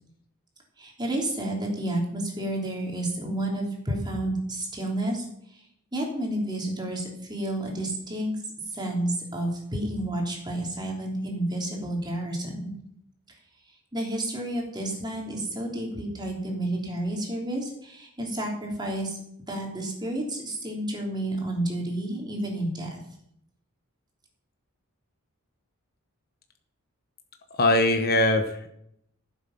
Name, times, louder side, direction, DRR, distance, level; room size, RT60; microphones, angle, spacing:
voice 1, 0.8-5.2 5.9-8.3 8.7-12.7 13.9-19.2 19.5-23.0, right 1 dB, 20° right, -1 dB, 3.1 m, -30 dB
voice 2, 27.6-28.7, left 1 dB, 45° left, 6 dB, 1.1 m, -21 dB
14.5 x 7.7 x 5.8 m, 0.74 s
head